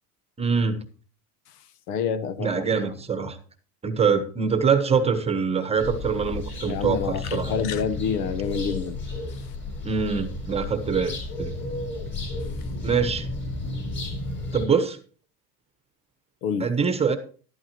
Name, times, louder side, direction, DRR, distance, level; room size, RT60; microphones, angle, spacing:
voice 1, 0.4-0.8 2.4-3.4 3.8-7.5 9.8-11.5 12.8-13.3 14.5-15.0 16.6-17.2, right 5 dB, 15° right, 1.0 m, -24 dB
voice 2, 1.9-2.6 6.6-9.0 16.4-16.7, left 7 dB, 90° left, 1.2 m, -27 dB
sound 1, 5.8-14.7, left 2 dB, 25° left, 4.3 m, -32 dB
12.0 x 12.0 x 3.0 m
supercardioid pair, 150°, 45 cm